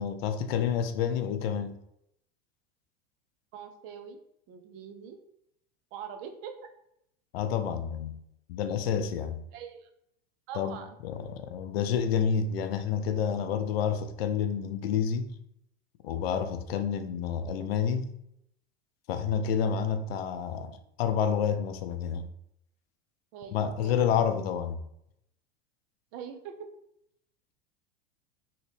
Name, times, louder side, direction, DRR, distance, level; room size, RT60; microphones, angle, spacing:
voice 1, 0.0-1.8 7.3-8.1 8.5-9.4 10.6-10.8 11.0-15.3 16.0-18.1 19.1-22.3 23.5-24.8, left 7 dB, 80° left, 0.5 m, -29 dB
voice 2, 3.5-4.2 4.5-5.2 5.9-6.7 9.5-9.9 10.5-11.0 23.3-24.0 26.1-26.7, right 7 dB, 50° right, 0.6 m, -43 dB
2.9 x 2.9 x 3.1 m
hypercardioid pair, 105°, 30 cm